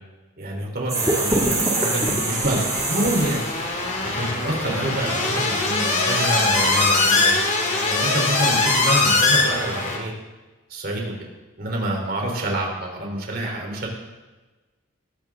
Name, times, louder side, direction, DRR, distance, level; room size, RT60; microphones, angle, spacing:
voice 1, 0.4-3.4 4.2-7.3 7.8-10.1 10.7-11.1 11.6-13.9, right 1 dB, 45° right, 0 dB, 3.7 m, -27 dB
sound 1, 0.9-10.0, left 3 dB, 35° left, 2.6 m, -22 dB
sound 2, 0.9-3.7, right 2 dB, 15° right, 2.2 m, -24 dB
20.5 x 16.0 x 3.7 m, 1.2 s
head